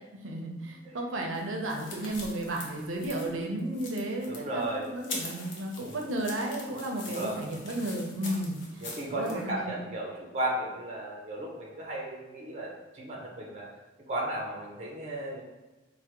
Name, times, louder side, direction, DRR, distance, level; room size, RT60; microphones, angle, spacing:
voice 1, 0.2-9.7, right 1 dB, 85° right, 1 dB, 0.5 m, -33 dB
sound 1, 1.3-9.4, left 3 dB, 65° left, 0.6 m, -43 dB
voice 2, 4.2-4.9 5.8-6.0 7.0-7.4 8.8-13.7 14.1-15.4, right 1 dB, 35° right, -3 dB, 0.5 m, -35 dB
3.3 x 2.1 x 2.9 m, 1.1 s
head